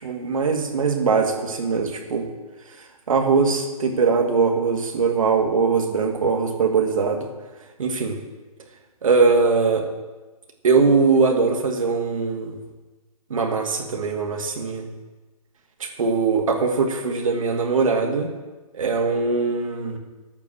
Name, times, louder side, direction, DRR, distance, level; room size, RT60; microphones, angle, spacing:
voice 1, 0.0-2.3 3.1-7.3 7.8-8.2 9.0-9.8 10.6-12.6 13.3-14.9 15.8-18.3 18.7-20.0, right 4 dB, 60° right, 3 dB, 2.2 m, -21 dB
11.5 x 8.7 x 6.4 m, 1.2 s
hypercardioid pair, 170°, 19 cm